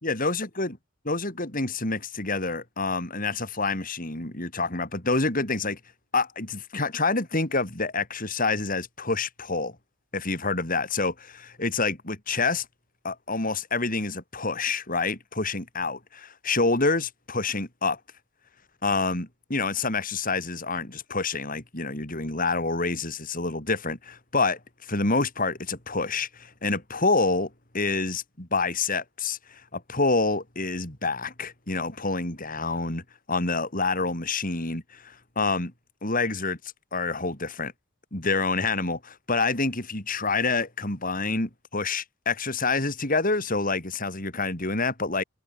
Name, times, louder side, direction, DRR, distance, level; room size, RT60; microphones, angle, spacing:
voice 1, 0.0-0.8 1.1-5.8 6.1-9.8 10.1-12.7 13.0-18.0 18.8-35.7 36.0-36.6 36.9-37.7 38.1-45.2, left 3 dB, 40° left, 4.6 m, -27 dB
head